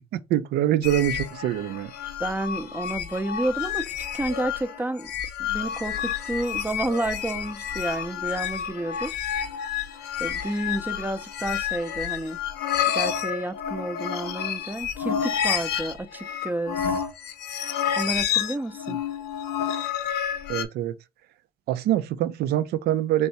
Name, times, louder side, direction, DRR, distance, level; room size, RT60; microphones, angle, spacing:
voice 1, 0.1-1.9 18.9-19.0 20.5-21.0 21.7-23.3, right 12 dB, 70° right, 0.5 m, -24 dB
sound 1, 0.8-20.6, left 9 dB, 75° left, 0.6 m, -30 dB
voice 2, 2.2-5.1 5.4-9.1 10.2-12.4 12.9-17.0 18.0-19.0, right 1 dB, 10° right, 0.5 m, -30 dB
3.3 x 2.7 x 4.1 m
cardioid pair, 110°, 17 cm